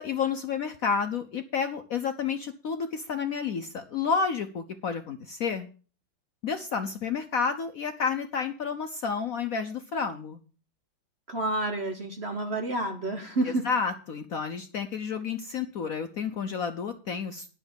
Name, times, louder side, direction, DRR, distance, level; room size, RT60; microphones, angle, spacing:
voice 1, 0.0-5.7 6.4-10.4 13.4-17.5, left 6 dB, 60° left, 7 dB, 0.9 m, -30 dB
voice 2, 11.3-13.7, right 2 dB, 45° right, 5 dB, 0.9 m, -29 dB
10.0 x 6.3 x 6.9 m, 0.38 s
omnidirectional pair, 2.2 m